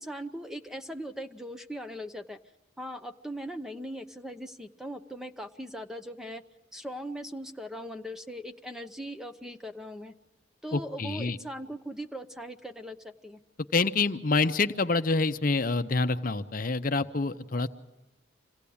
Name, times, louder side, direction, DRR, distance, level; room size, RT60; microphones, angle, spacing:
voice 1, 0.0-2.4 2.8-6.4 6.7-10.1 10.6-13.4, equal, ahead, 7 dB, 0.7 m, -39 dB
voice 2, 10.7-11.4 13.7-17.7, left 3 dB, 45° left, 10 dB, 0.7 m, -27 dB
26.5 x 17.0 x 8.6 m, 1.1 s
head